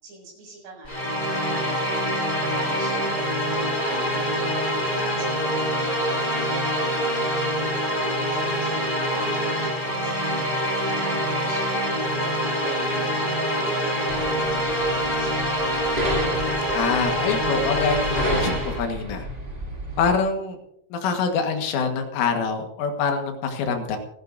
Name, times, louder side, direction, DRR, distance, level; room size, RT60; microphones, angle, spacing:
voice 1, 0.0-0.9 1.3-10.5 10.9-15.5, right 2 dB, 65° right, -1 dB, 9.0 m, -42 dB
sound 1, 0.8-18.8, equal, 10° left, 3.5 m, -25 dB
sound 2, 14.1-20.2, equal, 20° right, 1.3 m, -32 dB
voice 2, 16.7-19.3 20.0-20.6 20.9-24.0, left 5 dB, 75° left, 4 dB, 4.1 m, -25 dB
29.5 x 11.0 x 2.7 m, 0.75 s
omnidirectional pair, 5.7 m